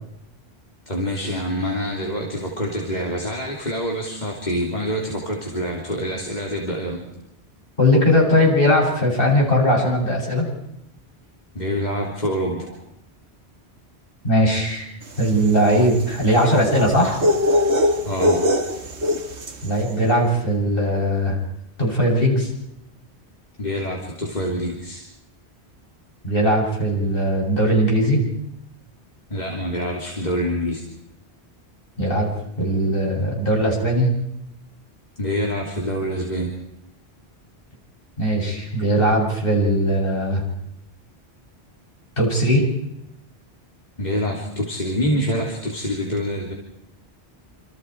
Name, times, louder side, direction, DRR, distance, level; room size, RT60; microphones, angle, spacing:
voice 1, 0.9-7.0 11.6-12.8 18.0-18.4 23.6-25.0 29.3-30.8 35.2-36.5 44.0-46.5, equal, 40° left, -2 dB, 3.5 m, -26 dB
voice 2, 7.8-10.5 14.2-14.9 15.2-17.2 19.6-21.4 21.8-22.5 26.2-28.2 32.0-32.3 32.6-34.1 38.2-40.4 42.2-42.6, equal, 55° left, -2 dB, 8.4 m, -19 dB
sound 1, 15.1-19.7, left 1 dB, 90° right, 2.1 m, -22 dB
28.0 x 27.5 x 4.8 m, 0.82 s
omnidirectional pair, 1.1 m